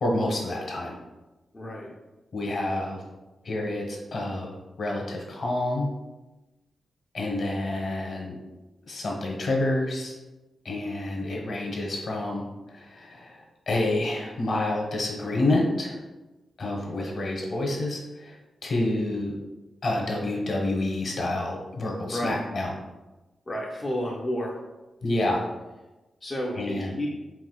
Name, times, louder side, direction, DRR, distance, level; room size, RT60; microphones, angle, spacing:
voice 1, 0.0-1.0 2.3-3.0 3.4-5.9 7.1-8.4 8.9-10.2 10.6-16.0 16.6-18.4 18.6-19.4 19.8-22.7 25.0-25.4 26.6-27.0, left 2 dB, 50° left, -1 dB, 1.0 m, -28 dB
voice 2, 1.5-1.9 22.1-22.4 23.5-24.6 26.2-27.1, equal, 20° left, -3 dB, 0.4 m, -31 dB
4.7 x 3.9 x 2.3 m, 1.1 s
wide cardioid pair, 160°, 0 cm